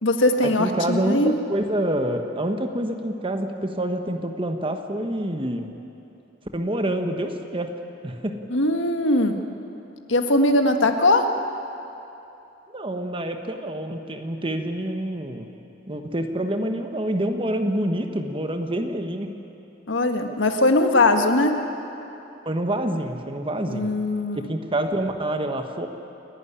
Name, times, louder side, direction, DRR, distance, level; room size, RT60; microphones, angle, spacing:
voice 1, 0.0-1.3 8.5-9.3 10.1-11.2 19.9-21.5 23.7-24.5, left 2 dB, 75° left, 5 dB, 1.7 m, -20 dB
voice 2, 0.6-5.7 6.5-7.7 8.0-8.4 12.7-15.5 15.9-19.3 22.4-23.9 24.3-25.9, right 1 dB, 25° right, 6 dB, 1.3 m, -27 dB
29.0 x 11.5 x 9.9 m, 2.9 s
head